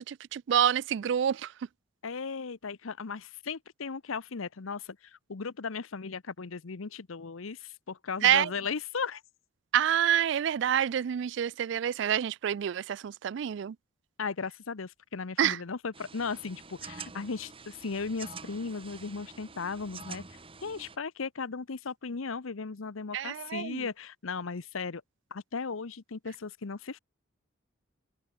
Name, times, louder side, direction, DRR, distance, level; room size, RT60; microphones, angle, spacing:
voice 1, 0.0-1.5 8.2-8.5 9.7-13.8 15.4-15.6 23.1-23.8, right 9 dB, 60° right, 0.3 m, -27 dB
voice 2, 2.0-9.2 14.2-20.2 20.6-25.0 25.3-27.0, left 5 dB, 85° left, 0.8 m, -36 dB
sound 1, 15.9-21.0, right 5 dB, 25° right, 1.8 m, -47 dB
head